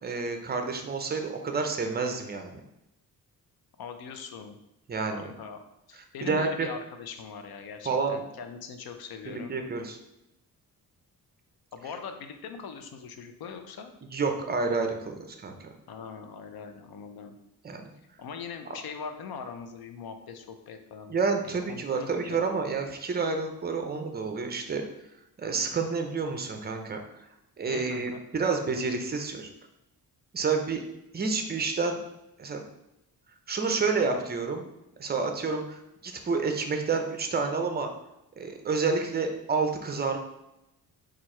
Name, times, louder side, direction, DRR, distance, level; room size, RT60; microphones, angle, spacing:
voice 1, 0.0-2.6 4.9-5.2 6.2-6.7 7.8-8.2 9.3-10.0 14.1-15.7 17.6-17.9 21.1-24.8 25.4-27.3 27.6-29.5 30.3-30.8 31.1-32.0 32.4-32.6 33.5-34.6 35.0-37.9 38.4-40.2, right 4 dB, 25° right, 4 dB, 0.5 m, -29 dB
voice 2, 3.8-4.6 5.0-5.6 5.9-9.5 11.7-13.9 15.9-17.3 18.2-21.1 21.4-22.6 27.7-28.2, left 6 dB, 75° left, 7 dB, 0.6 m, -41 dB
4.5 x 2.5 x 4.3 m, 0.88 s
wide cardioid pair, 140°, 37 cm